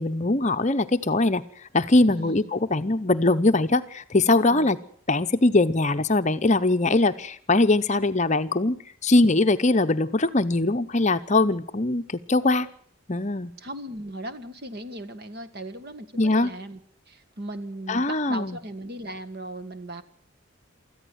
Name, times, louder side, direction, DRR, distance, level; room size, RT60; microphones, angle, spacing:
voice 1, 0.0-1.4 1.7-4.8 5.1-12.7 13.1-13.5 16.2-16.5 17.9-18.6, left 2 dB, 35° left, 9 dB, 0.8 m, -22 dB
voice 2, 2.1-2.5 4.5-4.7 13.6-16.8 17.1-20.0, right 1 dB, 45° right, 11 dB, 1.6 m, -37 dB
24.5 x 14.5 x 8.0 m, 0.63 s
head